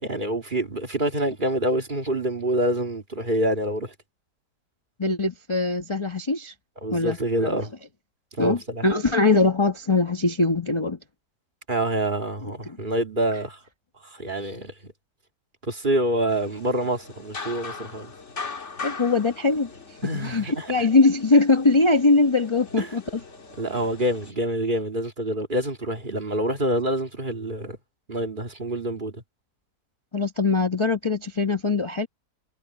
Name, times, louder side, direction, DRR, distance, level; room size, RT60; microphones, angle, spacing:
voice 1, 0.0-3.9 6.8-7.7 8.4-8.8 11.7-13.6 14.0-14.7 15.6-18.1 20.0-20.7 22.8-23.0 23.6-27.8 28.1-29.2, right 1 dB, 30° right, 2.3 m, -26 dB
voice 2, 5.0-6.5 6.9-7.2 7.4-7.5 8.4-11.0 12.7-12.8 18.8-19.7 20.1-23.0 30.1-32.1, left 3 dB, 20° left, 0.9 m, -21 dB
sound 1, 16.3-24.3, left 4 dB, 45° left, 2.0 m, -40 dB
omnidirectional pair, 1.7 m